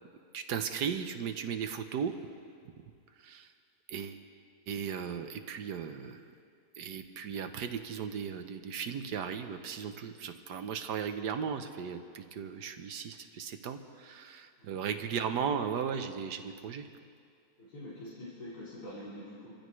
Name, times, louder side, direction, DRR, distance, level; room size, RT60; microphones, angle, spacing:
voice 1, 0.3-2.1 3.3-3.4 3.9-4.2 4.7-6.2 6.8-13.8 14.0-16.9, right 7 dB, 90° right, 8 dB, 1.5 m, -36 dB
voice 2, 17.6-19.5, left 1 dB, 75° left, -9 dB, 3.7 m, -45 dB
26.5 x 15.5 x 3.2 m, 2.3 s
omnidirectional pair, 1.7 m